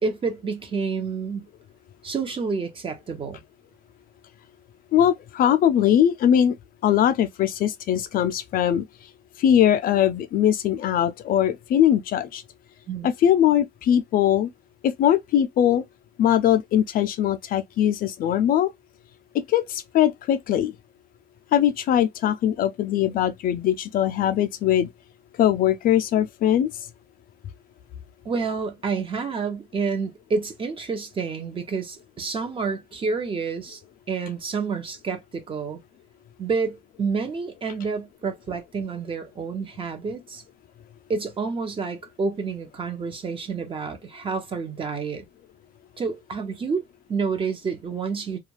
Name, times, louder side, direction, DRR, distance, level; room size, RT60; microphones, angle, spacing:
voice 1, 0.0-1.5 2.0-3.4 12.9-13.1 28.2-33.8 34.1-35.8 36.4-40.4 41.1-45.3 46.0-48.4, right 5 dB, 30° right, 0.7 m, -29 dB
voice 2, 4.9-6.6 6.8-8.8 9.4-12.4 13.0-14.5 14.8-15.8 16.2-18.7 19.3-20.7 21.5-24.9 25.4-26.7, left 10 dB, 55° left, 0.4 m, -21 dB
2.3 x 2.2 x 3.1 m
cardioid pair, 110°, 17 cm